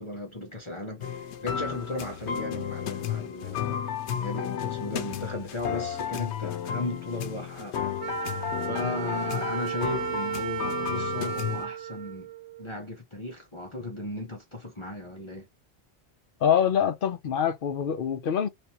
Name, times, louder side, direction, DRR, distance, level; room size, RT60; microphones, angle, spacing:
voice 1, 0.0-12.3 12.6-15.5, left 2 dB, 30° left, 1.0 m, -36 dB
sound 1, 1.0-11.6, left 9 dB, 85° left, 0.9 m, -33 dB
Wind instrument woodwind instrument, 8.0-12.8, right 8 dB, 85° right, 0.9 m, -34 dB
voice 2, 16.4-18.5, left 8 dB, 60° left, 0.8 m, -25 dB
3.5 x 3.3 x 2.9 m
omnidirectional pair, 1.1 m